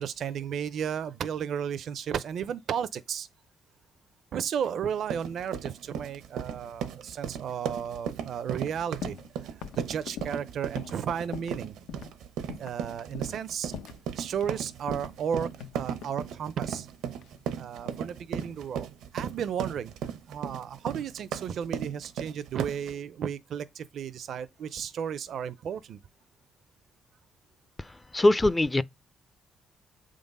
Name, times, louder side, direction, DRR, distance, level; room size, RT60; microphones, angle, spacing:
voice 1, 0.0-3.3 4.3-11.7 12.6-13.7 14.2-16.9 17.6-18.9 19.1-19.9 20.3-26.0, right 8 dB, 65° right, 0.6 m, -34 dB
sound 1, 4.9-22.9, right 8 dB, 85° right, 0.9 m, -36 dB
sound 2, 9.0-9.3 9.6-11.6 11.9-12.1 12.5-12.8 13.1-13.4 13.7-14.6 14.9-16.2 17.2-18.1 18.4-18.8, left 8 dB, 90° left, 0.8 m, -43 dB
voice 2, 28.1-28.8, left 1 dB, 15° left, 0.5 m, -21 dB
7.8 x 3.8 x 5.3 m
cardioid pair, 90°, 0 cm